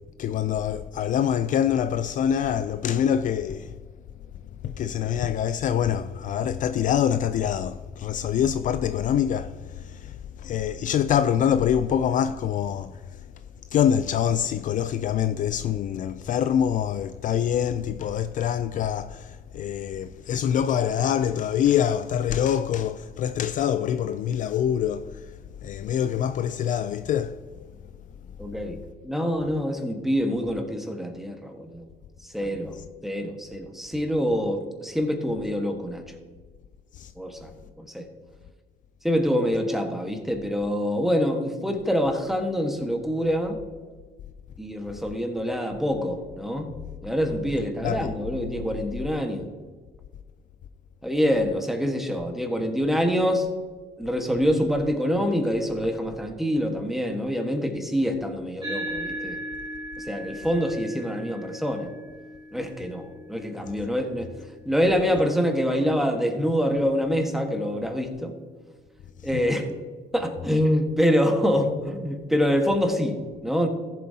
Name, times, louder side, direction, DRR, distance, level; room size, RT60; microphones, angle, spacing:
voice 1, 0.2-3.8 4.6-13.2 13.7-27.4 36.9-37.1 47.8-48.1 69.3-69.4, left 9 dB, 50° left, 0.4 m, -25 dB
voice 2, 28.4-31.8 32.2-32.8 33.0-36.1 37.2-37.5 37.8-38.1 39.0-43.6 44.6-46.7 47.0-49.5 51.0-53.5 54.0-59.4 60.0-61.9 62.5-64.3 64.6-68.3 69.2-69.7 70.1-73.7, equal, ahead, 1.4 m, -25 dB
sound 1, 58.6-67.3, equal, 25° right, 2.6 m, -39 dB
15.0 x 7.5 x 2.8 m
cardioid pair, 110°, 17 cm